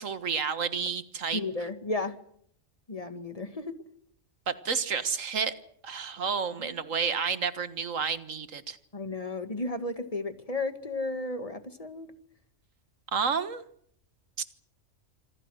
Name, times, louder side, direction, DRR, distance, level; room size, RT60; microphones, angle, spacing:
voice 1, 0.0-1.4 4.5-5.5 5.8-8.8 13.1-13.6, right 6 dB, 85° right, 12 dB, 1.9 m, -30 dB
voice 2, 1.3-2.2 2.9-3.7 6.6-6.8 8.9-12.1, left 2 dB, 30° left, 10 dB, 2.0 m, -33 dB
26.5 x 26.0 x 6.4 m, 0.67 s
omnidirectional pair, 1.3 m